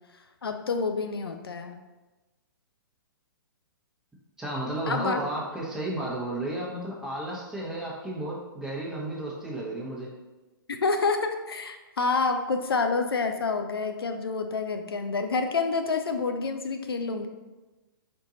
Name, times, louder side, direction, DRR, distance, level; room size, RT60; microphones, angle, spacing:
voice 1, 0.4-1.8 4.9-5.2 10.7-17.3, left 4 dB, 85° left, 6 dB, 0.4 m, -28 dB
voice 2, 4.4-10.1, right 1 dB, 5° right, -6 dB, 1.0 m, -33 dB
4.5 x 2.7 x 3.8 m, 1.1 s
hypercardioid pair, 125°, 12 cm